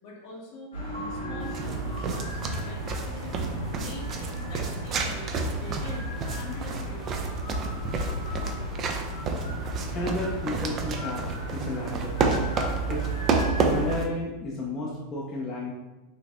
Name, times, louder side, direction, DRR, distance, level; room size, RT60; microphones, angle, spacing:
voice 1, 0.0-7.4, left 2 dB, 55° left, -2 dB, 0.9 m, -44 dB
sound 1, 0.7-13.9, right 2 dB, 85° left, 1.5 m, -35 dB
sound 2, 0.7-4.0 4.3-4.5, right 1 dB, 15° right, 0.9 m, -43 dB
sound 3, 1.4-14.1, right 3 dB, 35° right, 0.4 m, -30 dB
voice 2, 9.9-11.2 11.5-12.3 12.9-13.0 13.6-15.7, left 2 dB, 30° left, -4 dB, 0.6 m, -32 dB
4.0 x 2.5 x 2.4 m, 1.1 s
figure-of-eight pair, 90°, 0 cm